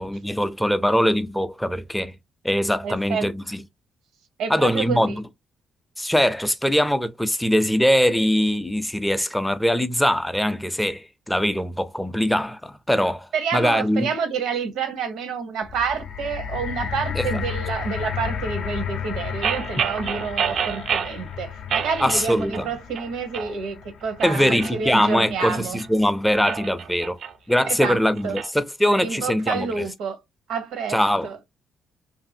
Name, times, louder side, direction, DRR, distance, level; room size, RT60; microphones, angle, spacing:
voice 1, 0.0-2.2 2.4-3.6 4.5-5.2 6.0-14.1 17.1-17.3 22.0-22.7 24.2-27.2 27.5-29.8 30.9-31.3, equal, 5° left, 0.4 m, -22 dB
voice 2, 2.8-3.3 4.4-5.1 13.3-25.8 27.6-28.4 29.0-30.2 30.5-31.4, right 6 dB, 85° right, 0.7 m, -28 dB
sound 1, 15.6-25.9 26.6-26.7, left 7 dB, 75° left, 0.5 m, -33 dB
sound 2, 19.4-21.2 21.7-22.7 23.0-23.5 24.0-25.9 26.3-28.5, right 7 dB, 65° right, 0.3 m, -29 dB
2.6 x 2.5 x 2.6 m
cardioid pair, 90°, 0 cm